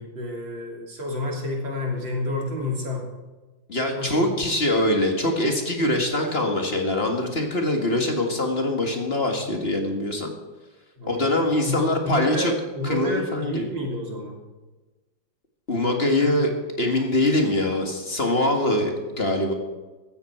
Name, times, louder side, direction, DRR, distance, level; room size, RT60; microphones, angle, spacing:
voice 1, 0.0-3.1 4.0-4.3 11.0-14.4 16.2-16.3, left 1 dB, 70° right, -1 dB, 3.8 m, -30 dB
voice 2, 3.7-10.3 11.0-12.5 12.8-13.7 15.7-19.5, left 1 dB, 30° left, 3 dB, 2.0 m, -23 dB
15.5 x 13.0 x 4.6 m, 1.2 s
omnidirectional pair, 2.1 m